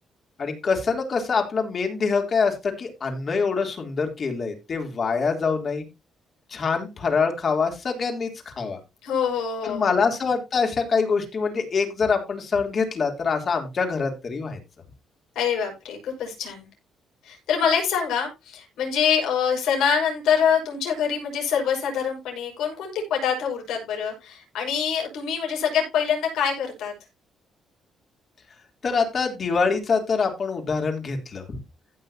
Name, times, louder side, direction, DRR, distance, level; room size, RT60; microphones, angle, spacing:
voice 1, 0.4-5.9 6.5-8.8 9.6-14.6 28.8-31.6, left 5 dB, 45° left, 3 dB, 3.3 m, -25 dB
voice 2, 9.0-10.0 15.4-16.7 17.2-26.9, left 7 dB, 85° left, 0 dB, 5.7 m, -25 dB
15.5 x 6.7 x 2.8 m, 0.25 s
cardioid pair, 90°, 0 cm